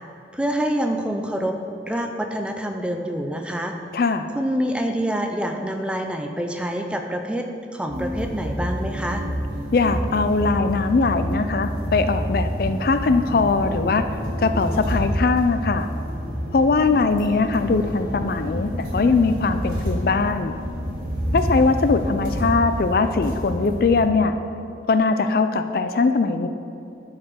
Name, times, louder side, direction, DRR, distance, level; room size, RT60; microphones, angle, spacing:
voice 1, 0.3-1.6 1.9-3.8 4.3-9.2, equal, 5° right, 4 dB, 0.5 m, -26 dB
voice 2, 3.9-4.3 9.7-14.0 14.4-15.9 16.5-20.5 21.3-24.3 24.9-26.5, left 4 dB, 50° left, 9 dB, 0.4 m, -21 dB
sound 1, 7.9-24.0, equal, 50° right, 2.4 m, -28 dB
11.0 x 4.8 x 6.4 m, 2.7 s
head